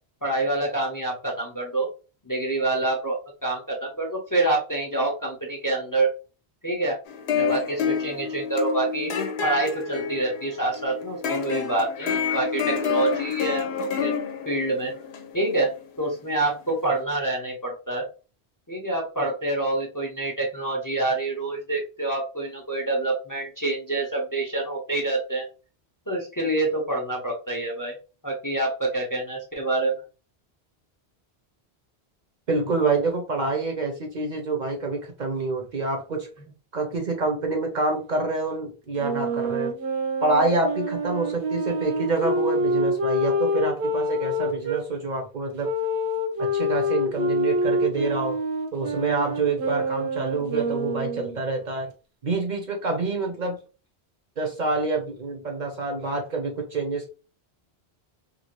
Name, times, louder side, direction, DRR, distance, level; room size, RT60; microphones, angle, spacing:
voice 1, 0.2-1.9 2.3-6.1 6.6-7.0 7.4-9.1 9.4-14.1 14.5-14.9 15.3-18.0 18.7-25.4 26.1-27.9 28.2-30.0, right 2 dB, 25° left, 0.5 m, -26 dB
sound 1, 7.1-16.3, left 7 dB, 90° left, 0.9 m, -29 dB
voice 2, 32.5-36.3 36.7-39.7 40.2-45.7 46.4-48.4 48.7-51.9 52.2-53.6 54.4-57.1, right 3 dB, 50° right, 0.7 m, -27 dB
Wind instrument woodwind instrument, 39.0-44.8 45.6-51.4, equal, 85° right, 1.0 m, -26 dB
2.9 x 2.4 x 2.9 m
omnidirectional pair, 1.1 m